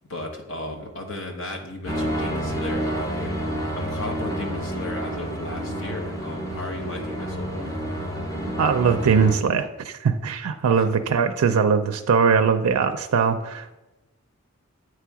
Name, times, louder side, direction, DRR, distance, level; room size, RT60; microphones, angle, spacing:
voice 1, 0.1-7.8 10.7-10.9, left 1 dB, 60° left, 2 dB, 1.1 m, -35 dB
sound 1, 1.9-9.3, right 1 dB, 15° left, 0.7 m, -29 dB
voice 2, 8.6-13.8, right 6 dB, 85° right, 6 dB, 0.4 m, -21 dB
8.5 x 3.2 x 4.7 m, 1.1 s
head